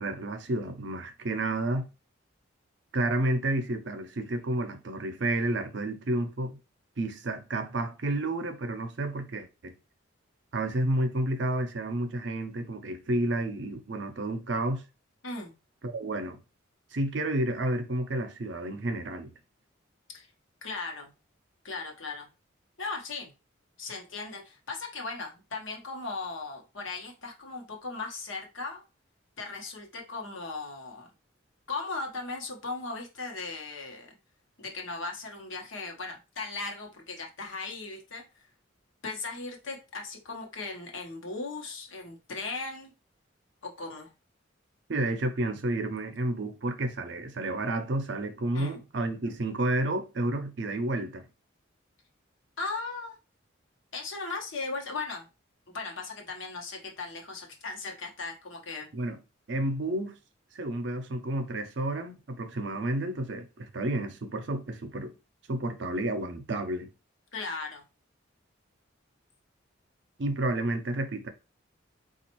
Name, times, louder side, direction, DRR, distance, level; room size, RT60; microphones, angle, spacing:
voice 1, 0.0-1.9 2.9-6.6 7.0-9.7 10.5-14.8 15.8-16.4 16.9-19.3 44.9-51.3 58.9-59.2 59.5-60.1 60.5-65.1 65.5-66.9 70.2-71.3, right 1 dB, 60° right, 0.6 m, -30 dB
voice 2, 15.2-15.5 20.1-20.3 20.6-21.1 21.6-22.3 22.8-23.3 23.8-28.8 29.4-31.1 31.7-34.1 34.6-38.4 39.0-42.9 43.6-44.1 48.5-48.8 52.6-53.2 53.9-55.3 55.7-58.9 67.3-67.8, left 3 dB, 75° left, 0.9 m, -37 dB
4.2 x 2.4 x 2.9 m
head